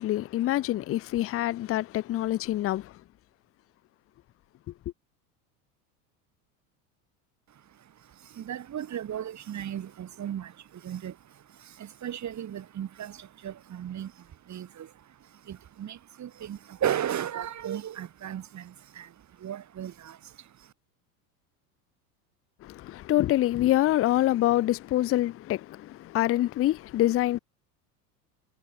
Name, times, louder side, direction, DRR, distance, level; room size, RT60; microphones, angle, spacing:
voice 1, 0.0-2.8 22.6-27.4, left 14 dB, 30° left, 0.6 m, -26 dB
voice 2, 7.5-20.7, right 10 dB, 35° right, 3.3 m, -36 dB
hypercardioid pair, 80°, 47 cm